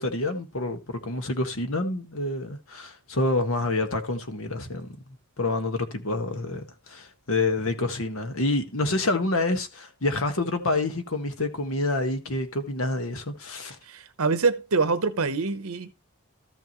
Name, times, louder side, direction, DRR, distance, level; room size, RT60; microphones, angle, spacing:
voice 1, 0.0-5.0 5.4-13.8, left 2 dB, 70° left, 1.5 m, -27 dB
voice 2, 13.9-15.9, right 4 dB, 80° right, 0.9 m, -25 dB
14.0 x 5.9 x 3.1 m
head